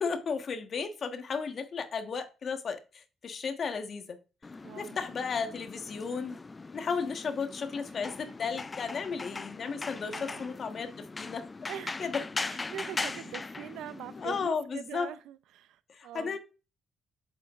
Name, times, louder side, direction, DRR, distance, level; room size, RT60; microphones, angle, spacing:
voice 1, 0.0-4.2 4.8-6.4 6.7-11.5 12.0-12.2 14.2-15.1 15.9-16.4, left 5 dB, 55° left, 1.3 m, -34 dB
sound 1, 4.4-14.5, left 3 dB, 30° left, 0.3 m, -40 dB
voice 2, 4.6-5.0 10.1-10.5 11.7-12.1 12.4-16.4, right 11 dB, 75° right, 0.6 m, -43 dB
8.2 x 7.4 x 2.5 m
hypercardioid pair, 55°, 0 cm